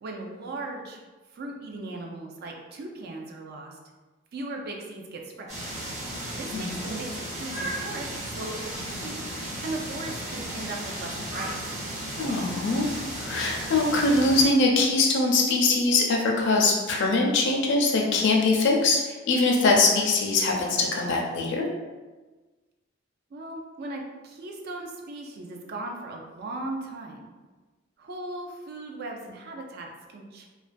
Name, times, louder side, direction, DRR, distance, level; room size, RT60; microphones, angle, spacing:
voice 1, 0.0-1.0 1.3-3.8 4.3-5.5 6.3-9.3 9.6-11.8 23.3-27.3 28.0-30.5, right 2 dB, 50° right, 1 dB, 0.4 m, -38 dB
sound 1, 5.5-14.5, right 1 dB, 35° right, 0.9 m, -35 dB
voice 2, 12.2-12.9 13.2-21.7, left 3 dB, 60° left, 0 dB, 0.4 m, -22 dB
2.3 x 2.2 x 2.4 m, 1.3 s
head